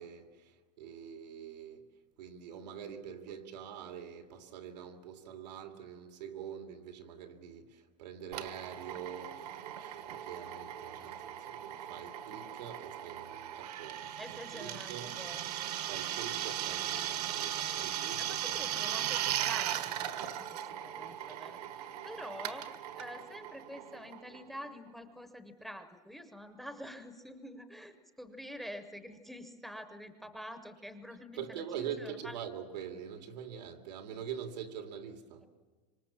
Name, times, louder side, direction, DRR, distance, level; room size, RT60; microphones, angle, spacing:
voice 1, 0.0-1.9 2.2-15.1 15.9-18.7 31.4-35.4, right 8 dB, 90° right, 2.7 m, -45 dB
Drill, 8.3-24.7, right 11 dB, 70° right, 1.6 m, -38 dB
voice 2, 14.2-15.7 18.2-32.4 35.4-35.5, equal, ahead, 0.7 m, -47 dB
25.5 x 25.0 x 7.2 m
supercardioid pair, 175°, 21 cm